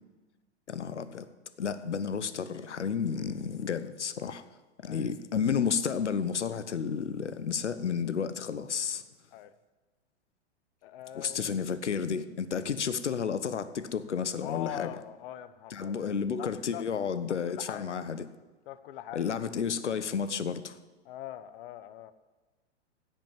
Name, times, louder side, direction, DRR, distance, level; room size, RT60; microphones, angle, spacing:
voice 1, 0.7-1.3 1.6-4.4 4.8-9.0 11.1-14.9 15.7-18.3 19.1-20.8, left 6 dB, 90° left, 13 dB, 1.0 m, -31 dB
voice 2, 10.8-11.5 14.4-16.9 17.3-18.0 18.7-19.4 21.0-22.1, left 12 dB, 50° left, 14 dB, 1.0 m, -43 dB
16.5 x 5.6 x 9.1 m, 1.2 s
hypercardioid pair, 115°, 34 cm